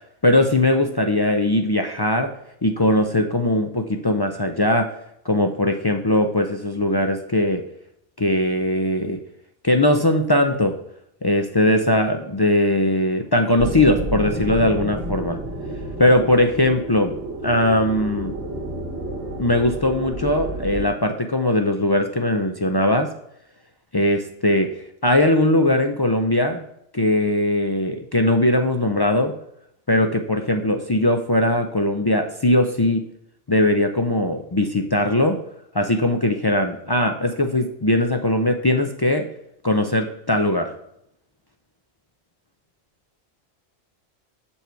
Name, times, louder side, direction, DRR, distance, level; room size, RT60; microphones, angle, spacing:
voice 1, 0.2-2.3 2.6-4.9 5.2-7.6 8.2-9.2 9.6-10.7 11.2-15.4 16.0-17.1 17.4-18.3 19.4-23.1 23.9-24.7 25.0-26.6 26.9-29.3 29.9-33.1 33.5-35.4 35.7-39.3 39.6-40.7, left 1 dB, 35° left, 4 dB, 0.4 m, -20 dB
sound 1, 13.6-20.9, right 1 dB, 80° right, 2.1 m, -30 dB
7.1 x 4.6 x 6.8 m, 0.77 s
omnidirectional pair, 1.2 m